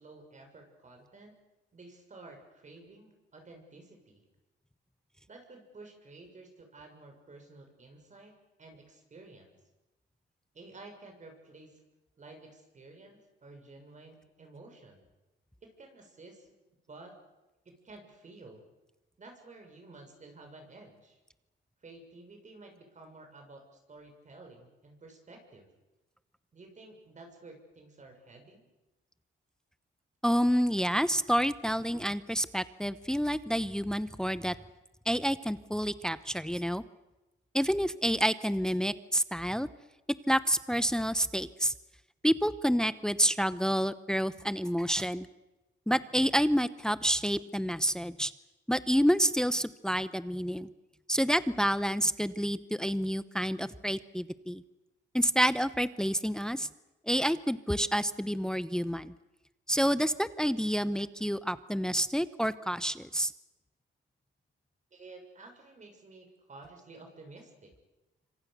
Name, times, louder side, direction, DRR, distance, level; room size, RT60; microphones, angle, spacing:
voice 1, 0.0-1.4 1.7-4.2 5.3-9.6 10.5-11.8 12.2-15.0 15.6-16.5 16.9-17.1 17.6-18.6 19.2-21.2 21.8-25.7 26.5-28.7 64.9-67.7, right 2 dB, 40° right, 4 dB, 6.7 m, -52 dB
voice 2, 30.2-34.5 35.1-36.8 37.5-39.7 40.3-41.7 42.2-45.3 45.9-48.3 48.7-50.7 51.1-54.6 55.1-56.7 57.1-59.1 59.7-63.3, equal, 5° left, 14 dB, 0.9 m, -28 dB
26.5 x 25.0 x 6.8 m, 1.0 s
cardioid pair, 90°, 20 cm